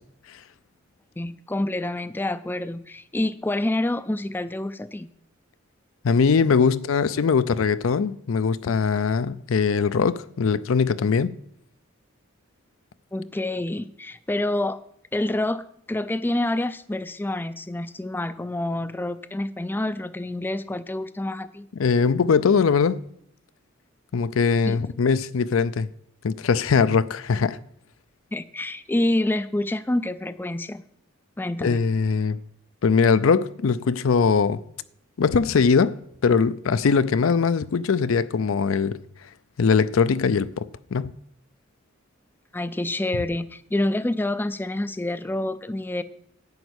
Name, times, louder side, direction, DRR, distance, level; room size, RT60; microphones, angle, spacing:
voice 1, 1.2-5.1 13.1-14.8 15.1-21.7 24.6-24.8 28.3-30.8 31.4-31.8 42.5-46.0, left 1 dB, 10° left, 0.3 m, -27 dB
voice 2, 6.0-11.3 21.8-23.0 24.1-25.9 26.2-27.6 31.6-32.4 32.8-34.6 35.2-39.0 39.6-40.7 40.9-41.1, left 5 dB, 75° left, 0.5 m, -21 dB
10.5 x 5.2 x 8.1 m
head